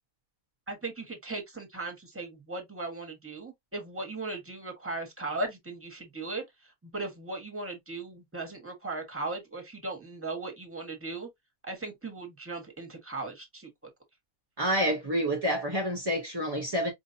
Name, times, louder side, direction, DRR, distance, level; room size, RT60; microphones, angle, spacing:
voice 1, 0.7-11.3 11.6-13.7, right 2 dB, 10° right, 1.1 m, -37 dB
voice 2, 14.6-16.9, equal, 35° right, 0.4 m, -28 dB
4.9 x 2.6 x 2.6 m
omnidirectional pair, 1.8 m